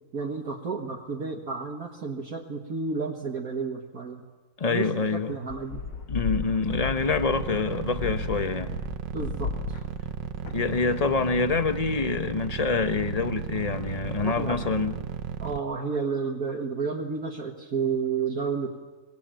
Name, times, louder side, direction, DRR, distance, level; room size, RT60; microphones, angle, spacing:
voice 1, 0.1-4.2 4.7-4.9 5.3-5.8 9.1-9.5 14.2-14.6 15.4-18.8, right 5 dB, 55° right, 2.1 m, -31 dB
voice 2, 4.6-5.4 6.1-8.8 10.5-14.9, left 4 dB, 30° left, 0.9 m, -26 dB
sound 1, 5.5-11.0, left 6 dB, 85° left, 2.1 m, -35 dB
sound 2, 6.7-15.6, right 8 dB, 85° right, 1.7 m, -34 dB
25.0 x 20.0 x 9.1 m
omnidirectional pair, 1.9 m